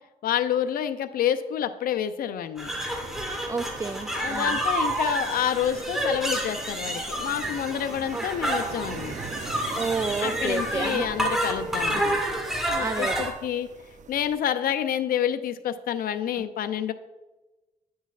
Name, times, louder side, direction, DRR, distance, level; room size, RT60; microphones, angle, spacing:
voice 1, 0.2-2.7 4.1-9.2 10.2-12.2 12.7-13.7 14.1-16.9, left 9 dB, 80° left, 11 dB, 0.5 m, -28 dB
sound 1, 2.6-13.3, right 1 dB, 5° right, 1.7 m, -29 dB
sound 2, 2.6-14.3, right 5 dB, 55° right, 0.7 m, -42 dB
voice 2, 3.5-4.6 8.1-8.2 9.7-11.0 11.8-12.0 12.8-13.3, right 4 dB, 20° right, 10 dB, 0.4 m, -30 dB
10.0 x 6.3 x 2.4 m, 1.1 s
cardioid pair, 65°, 15 cm